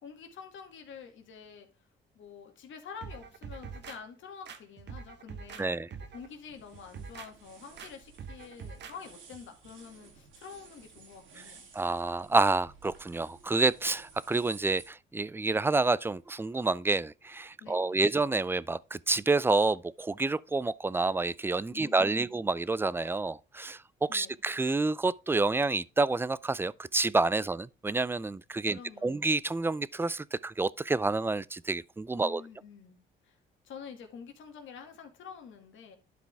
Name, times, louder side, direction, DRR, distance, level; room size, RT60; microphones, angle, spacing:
voice 1, 0.0-1.7 2.1-11.7 17.6-18.1 21.7-22.3 24.1-24.4 28.7-29.2 32.2-33.0 33.2-33.4 33.6-36.0, left 6 dB, 75° left, 2.2 m, -48 dB
sound 1, 3.0-4.0 4.5-5.6 5.9-6.3 6.7-7.3 7.8-7.9 8.2-9.0 9.3-9.4, right 6 dB, 60° right, 1.3 m, -44 dB
voice 2, 5.6-5.9 11.7-32.4, right 3 dB, 10° right, 0.4 m, -28 dB
sound 2, 6.1-14.9, right 5 dB, 80° right, 2.9 m, -55 dB
11.5 x 5.0 x 3.5 m
cardioid pair, 90°, 20 cm